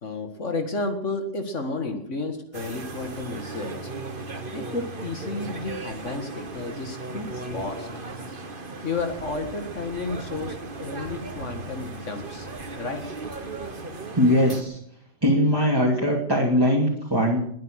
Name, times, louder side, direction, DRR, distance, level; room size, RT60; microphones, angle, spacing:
voice 1, 0.0-3.9 4.5-7.9 8.8-12.5 12.8-13.0, left 3 dB, 65° left, 6 dB, 2.1 m, -32 dB
sound 1, 2.5-14.6, right 2 dB, 40° right, 1.7 m, -36 dB
voice 2, 14.2-14.8 15.2-17.4, equal, 15° right, -3 dB, 2.9 m, -21 dB
21.5 x 9.5 x 6.5 m, 0.69 s
omnidirectional pair, 1.4 m